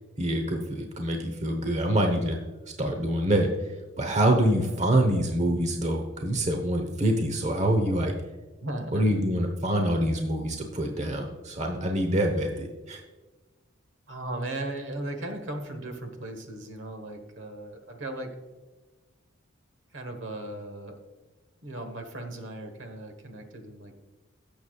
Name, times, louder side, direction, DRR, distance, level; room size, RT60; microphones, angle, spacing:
voice 1, 0.2-2.4 2.8-8.1 8.9-13.0, right 1 dB, 35° right, 4 dB, 1.0 m, -26 dB
voice 2, 8.6-9.0 14.1-18.3 19.9-20.9 21.6-24.0, right 1 dB, 65° right, 6 dB, 1.3 m, -37 dB
16.5 x 7.0 x 2.4 m, 1.2 s
head